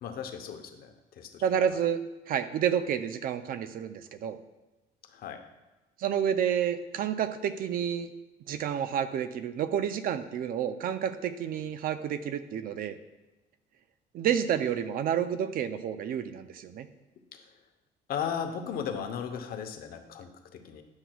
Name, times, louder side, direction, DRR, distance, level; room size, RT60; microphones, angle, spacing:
voice 1, 0.0-1.4 5.1-5.4 17.3-17.4 18.1-20.8, left 7 dB, 65° left, 5 dB, 0.8 m, -36 dB
voice 2, 1.4-4.4 6.0-8.1 8.5-13.0 14.1-16.9, right 9 dB, 60° right, 11 dB, 0.5 m, -30 dB
9.6 x 5.9 x 2.3 m, 1.1 s
cardioid pair, 110°, 17 cm